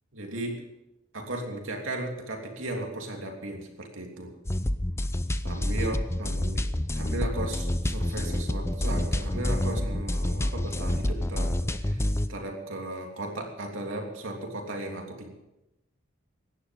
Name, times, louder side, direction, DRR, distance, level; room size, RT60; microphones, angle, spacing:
voice 1, 0.1-0.6 1.1-4.3 5.4-6.6 6.9-12.0 12.3-15.3, right 1 dB, 70° right, 1 dB, 3.1 m, -35 dB
sound 1, 4.4-12.3, left 1 dB, 15° left, 0.6 m, -28 dB
17.0 x 11.5 x 5.4 m, 0.94 s
head